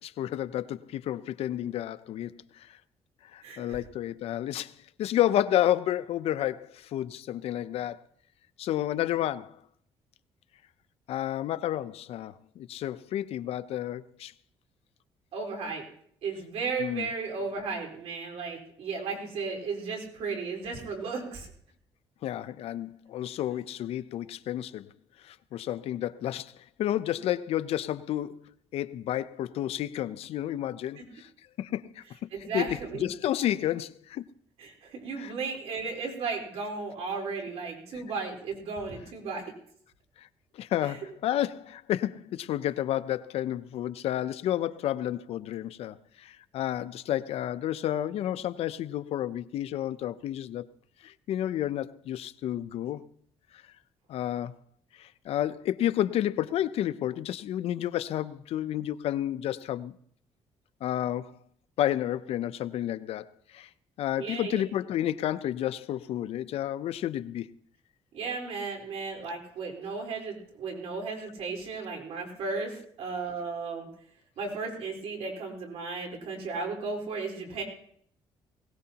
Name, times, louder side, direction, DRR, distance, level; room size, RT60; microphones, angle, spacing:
voice 1, 0.0-2.8 3.3-4.7 5.0-8.0 8.6-9.6 11.1-14.3 16.8-17.1 22.2-24.9 25.2-26.5 26.8-28.4 28.7-31.3 31.6-32.0 32.5-34.2 35.2-35.3 37.9-38.0 40.2-40.3 40.5-50.7 51.0-53.1 54.1-54.6 55.0-59.9 60.8-61.4 61.8-63.7 64.0-67.5, left 12 dB, 70° left, 0.6 m, -31 dB
voice 2, 3.4-3.8 15.3-15.8 16.2-21.5 32.3-33.1 34.6-39.5 40.8-40.9 64.2-64.6 68.1-72.7 73.0-73.9 74.4-77.6, right 4 dB, 75° right, 4.0 m, -35 dB
20.5 x 18.0 x 2.9 m
cardioid pair, 125°, 11 cm